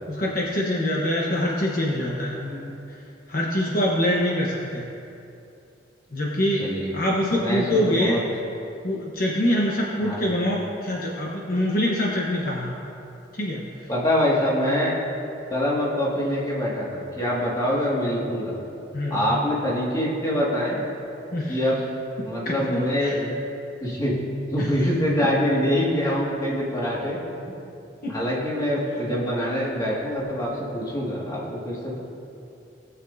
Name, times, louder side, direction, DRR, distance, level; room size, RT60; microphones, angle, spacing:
voice 1, 0.1-3.0 3.3-4.9 6.1-8.2 8.8-12.7 13.3-13.9 18.9-19.2 21.3-21.7 22.4-23.2 24.6-24.7 28.0-28.1, left 1 dB, 50° left, -4 dB, 1.0 m, -25 dB
voice 2, 6.6-6.9 7.4-8.2 10.0-10.2 13.9-14.9 15.5-18.5 19.1-20.8 21.5-21.8 22.2-23.3 23.8-24.2 24.5-27.2 27.4-27.5 28.1-32.0, equal, 20° left, -6 dB, 2.0 m, -24 dB
18.5 x 7.0 x 2.7 m, 2.7 s
head